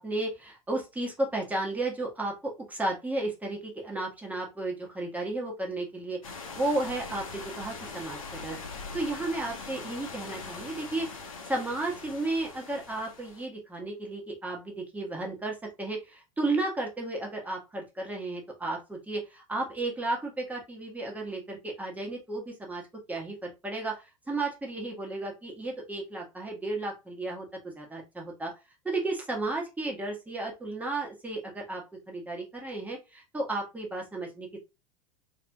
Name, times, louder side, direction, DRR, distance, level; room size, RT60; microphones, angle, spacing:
voice 1, 0.0-6.2 6.5-8.6 8.9-22.8 23.1-28.5 28.8-34.6, right 2 dB, 10° right, -1 dB, 1.3 m, -33 dB
sound 1, 6.2-13.5, left 4 dB, 70° left, 0.9 m, -42 dB
4.0 x 3.0 x 2.2 m, 0.26 s
figure-of-eight pair, 80°, 18 cm